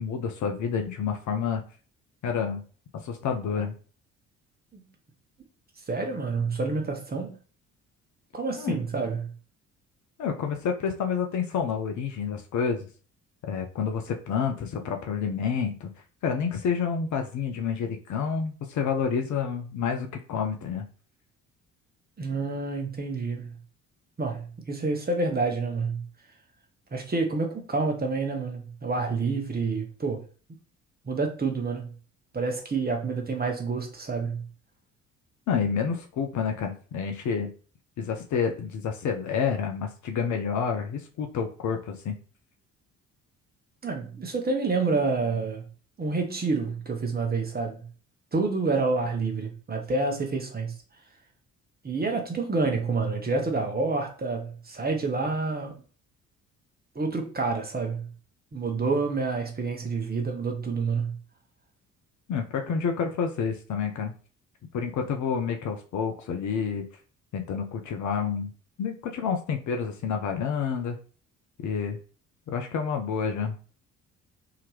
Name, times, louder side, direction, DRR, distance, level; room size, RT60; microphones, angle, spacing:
voice 1, 0.0-1.6 2.2-2.6 3.0-3.7 8.6-8.8 10.2-12.8 13.5-15.9 16.2-20.9 35.5-37.5 38.0-42.2 62.3-64.1 64.7-66.9 67.3-68.5 68.8-71.0 71.6-72.0 72.5-73.6, left 6 dB, 45° left, 0.7 m, -29 dB
voice 2, 5.9-7.4 8.3-9.3 22.2-23.5 24.2-26.0 26.9-30.2 31.0-31.9 32.3-34.5 43.8-45.6 46.0-47.9 48.3-50.7 51.8-55.7 56.9-58.1 58.5-61.2, right 3 dB, 20° right, 1.1 m, -28 dB
3.8 x 2.8 x 3.1 m
figure-of-eight pair, 45°, 41 cm